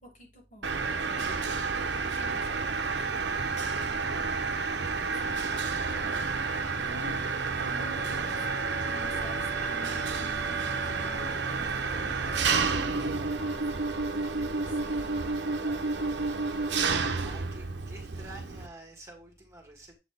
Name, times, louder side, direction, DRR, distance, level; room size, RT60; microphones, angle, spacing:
voice 1, 0.0-4.3 5.0-6.2 6.8-7.2 7.6-16.3, left 2 dB, 45° left, 1 dB, 2.4 m, -50 dB
Mechanisms, 0.6-18.7, right 4 dB, 75° right, 0.8 m, -30 dB
sound 1, 7.7-12.7, left 1 dB, 90° left, 2.2 m, -46 dB
voice 2, 17.2-20.0, right 2 dB, 15° right, 1 dB, 1.5 m, -48 dB
7.6 x 4.1 x 3.4 m, 0.28 s
head